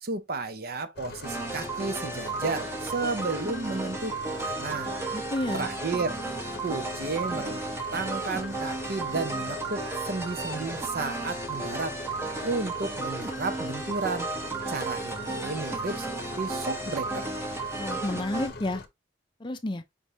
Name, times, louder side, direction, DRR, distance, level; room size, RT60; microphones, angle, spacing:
voice 1, 0.0-4.9 5.5-6.2 6.6-7.6 7.9-12.0 12.4-14.3 14.7-17.3, right 3 dB, 50° right, 0.6 m, -33 dB
sound 1, 0.9-18.9, left 3 dB, 55° left, 0.7 m, -42 dB
sound 2, 1.2-18.5, right 3 dB, 15° right, 0.9 m, -34 dB
voice 2, 5.1-5.7 17.8-18.8 19.4-19.8, left 1 dB, 25° left, 0.5 m, -31 dB
5.2 x 3.4 x 2.7 m
head